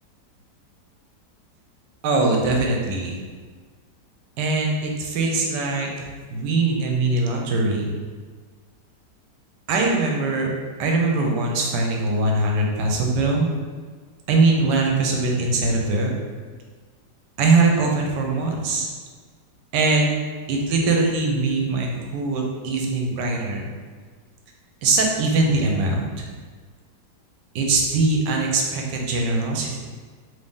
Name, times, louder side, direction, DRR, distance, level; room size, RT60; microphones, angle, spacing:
voice 1, 2.0-3.2 4.4-7.9 9.7-10.5 10.8-13.5 14.3-16.1 17.4-18.9 19.7-20.1 20.5-23.7 24.8-26.2 27.5-29.8, right 3 dB, 90° right, 0 dB, 1.2 m, -22 dB
3.1 x 2.7 x 3.6 m, 1.5 s
omnidirectional pair, 1.8 m